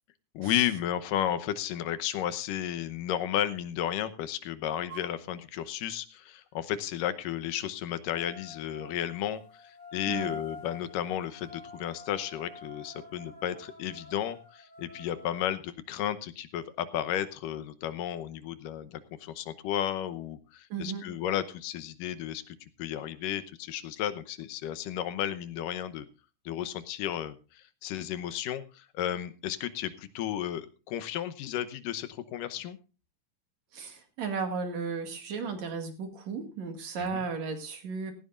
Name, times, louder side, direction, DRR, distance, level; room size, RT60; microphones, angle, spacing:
voice 1, 0.3-26.1 26.5-32.8 37.0-37.2, left 11 dB, 85° left, 13 dB, 2.6 m, -33 dB
sound 1, 4.9-5.2 8.1-15.5, left 2 dB, 25° right, 3.3 m, -46 dB
voice 2, 20.7-21.1 33.7-38.1, right 5 dB, 60° right, 6 dB, 3.2 m, -35 dB
17.5 x 15.5 x 2.5 m, 0.32 s
omnidirectional pair, 3.7 m